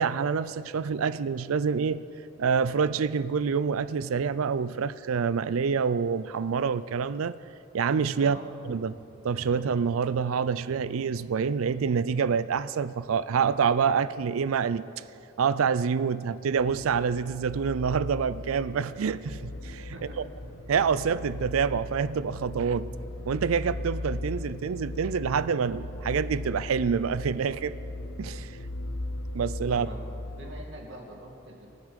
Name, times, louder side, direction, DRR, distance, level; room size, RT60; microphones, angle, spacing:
voice 1, 0.0-2.0 2.4-7.3 7.7-8.4 8.7-14.9 15.4-19.9 20.7-22.9 23.3-27.7 28.2-28.6 29.3-29.9, right 6 dB, 85° right, 16 dB, 0.4 m, -27 dB
sound 1, 16.6-30.6, left 1 dB, 80° left, 1.0 m, -38 dB
voice 2, 30.4-31.7, right 1 dB, 60° right, -1 dB, 2.3 m, -44 dB
21.0 x 8.2 x 5.2 m, 2.8 s
head